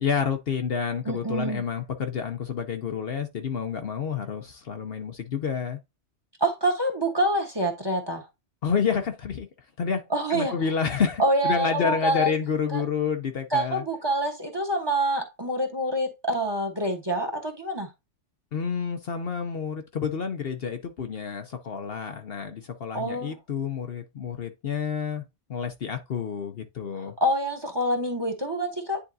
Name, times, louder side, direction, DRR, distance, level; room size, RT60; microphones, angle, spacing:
voice 1, 0.0-5.8 8.6-9.5 9.8-10.0 10.3-13.8 18.5-25.2 25.5-27.2, left 6 dB, 55° left, 0.9 m, -29 dB
voice 2, 1.0-1.6 6.4-8.3 10.1-10.5 11.2-12.3 12.7-12.8 13.5-17.9 22.9-23.3 27.0-29.0, right 1 dB, 20° right, 1.2 m, -26 dB
9.8 x 3.6 x 2.7 m
omnidirectional pair, 1.2 m